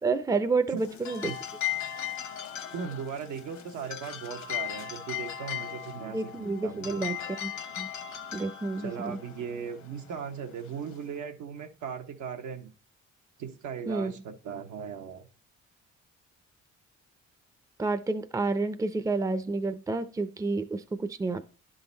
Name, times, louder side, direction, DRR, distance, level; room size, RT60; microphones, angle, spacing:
voice 1, 0.0-1.3 6.1-7.2 7.4-7.5 7.8-7.9 8.3-9.2 13.9-14.1 17.8-21.5, right 3 dB, 10° right, 0.5 m, -29 dB
sound 1, 0.8-11.2, left 11 dB, 65° left, 1.1 m, -38 dB
voice 2, 2.7-7.0 8.8-12.7 13.4-15.3, right 7 dB, 80° right, 1.1 m, -38 dB
11.0 x 3.9 x 4.0 m
cardioid pair, 90°, 30 cm